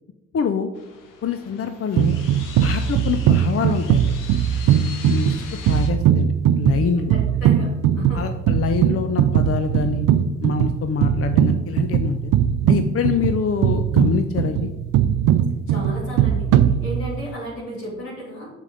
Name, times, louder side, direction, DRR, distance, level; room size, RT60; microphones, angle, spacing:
voice 1, 0.3-0.7 1.2-2.1 2.6-4.1 5.1-7.1 8.1-10.1 10.4-12.3 12.7-14.7, left 6 dB, 45° left, 8 dB, 0.6 m, -25 dB
sound 1, 0.7-5.9, left 6 dB, 70° left, 1.1 m, -41 dB
sound 2, 2.0-17.3, right 9 dB, 70° right, 0.5 m, -20 dB
voice 2, 7.1-7.7 7.9-8.2 15.7-16.5 16.8-18.5, equal, 90° left, -7 dB, 2.9 m, -33 dB
7.3 x 6.7 x 3.9 m, 1.1 s
hypercardioid pair, 40°, 33 cm